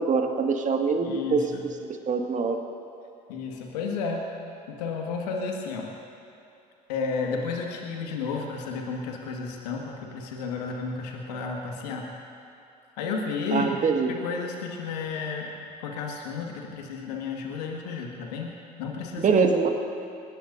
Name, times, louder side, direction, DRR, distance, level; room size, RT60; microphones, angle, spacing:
voice 1, 0.0-1.5 2.1-2.6 13.5-14.1 19.2-19.7, right 5 dB, 35° right, 3 dB, 1.9 m, -23 dB
voice 2, 1.0-1.7 3.3-4.3 4.7-5.9 6.9-12.1 13.0-13.7 14.1-19.4, left 4 dB, 75° left, 1 dB, 1.9 m, -32 dB
22.5 x 20.0 x 2.7 m, 2.8 s
hypercardioid pair, 60°, 21 cm